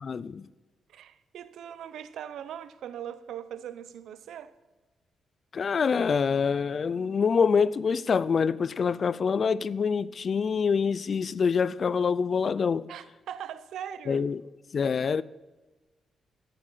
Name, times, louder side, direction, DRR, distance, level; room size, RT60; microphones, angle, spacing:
voice 1, 0.0-0.4 5.5-12.9 14.1-14.4 14.7-15.2, left 6 dB, 50° left, 0.4 m, -25 dB
voice 2, 0.9-4.5 12.9-14.2, right 9 dB, 85° right, 0.7 m, -40 dB
14.0 x 9.8 x 5.6 m
cardioid pair, 95°, 0 cm